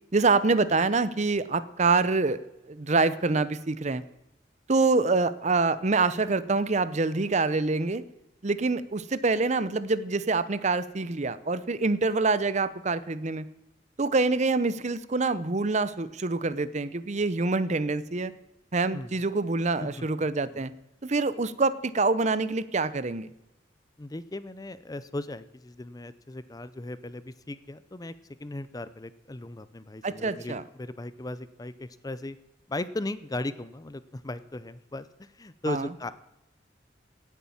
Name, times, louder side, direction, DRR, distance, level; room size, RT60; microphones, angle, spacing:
voice 1, 0.1-2.4 2.7-4.0 4.7-8.0 8.4-13.5 14.0-18.3 18.7-20.7 21.0-23.3 30.0-30.6 35.7-35.9, right 3 dB, 40° right, 15 dB, 0.7 m, -26 dB
voice 2, 19.8-20.1 20.5-20.6 24.0-28.1 28.4-32.4 32.7-36.1, left 2 dB, 20° left, 14 dB, 0.6 m, -37 dB
17.0 x 8.4 x 7.2 m, 0.90 s
head